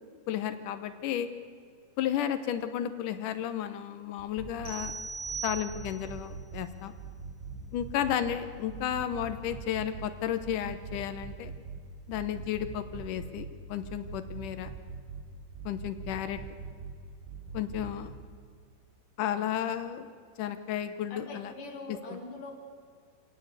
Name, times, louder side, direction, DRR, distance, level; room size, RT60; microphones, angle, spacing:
voice 1, 0.3-1.3 2.0-4.9 5.4-6.9 7.7-11.5 12.1-14.7 15.7-16.4 17.5-18.1 19.2-20.1 20.4-21.5, left 10 dB, 85° left, 9 dB, 1.8 m, -33 dB
sound 1, 4.2-4.9 5.3-6.6 7.0-8.4 8.7-10.1 10.4-11.8 12.1-13.5 13.8-15.2 15.5-16.9 17.3-17.9, right 5 dB, 70° right, 6.2 m, -41 dB
sound 2, 4.7-6.2, right 5 dB, 45° right, 4.8 m, -39 dB
voice 2, 21.1-22.5, left 3 dB, 50° left, 3 dB, 3.8 m, -43 dB
26.0 x 18.0 x 8.3 m, 2.2 s
omnidirectional pair, 5.1 m